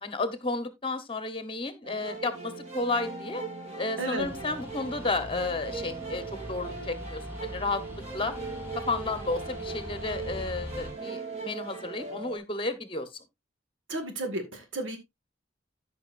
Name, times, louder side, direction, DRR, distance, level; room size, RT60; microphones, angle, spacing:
voice 1, 0.0-3.4 3.8-7.8 8.1-8.3 8.7-13.1, left 3 dB, 25° left, 1.1 m, -32 dB
sound 1, 1.8-12.4, right 3 dB, 35° right, 3.0 m, -39 dB
sound 2, 4.2-10.9, equal, 10° right, 3.0 m, -42 dB
voice 2, 13.9-15.0, right 1 dB, 75° right, 2.1 m, -33 dB
14.0 x 5.7 x 2.6 m
head